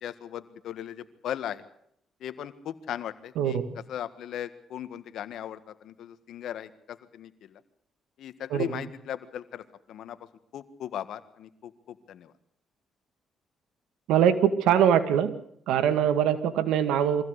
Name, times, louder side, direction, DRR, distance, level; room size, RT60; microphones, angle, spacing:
voice 1, 0.0-1.6 2.2-3.6 3.9-7.6 8.2-10.2 10.5-12.3, left 10 dB, 75° left, 12 dB, 1.7 m, -38 dB
voice 2, 3.4-3.8 8.5-8.8 14.1-15.3 15.7-17.2, right 9 dB, 90° right, 9 dB, 2.0 m, -23 dB
24.0 x 15.5 x 8.2 m, 0.71 s
cardioid pair, 90°, 0 cm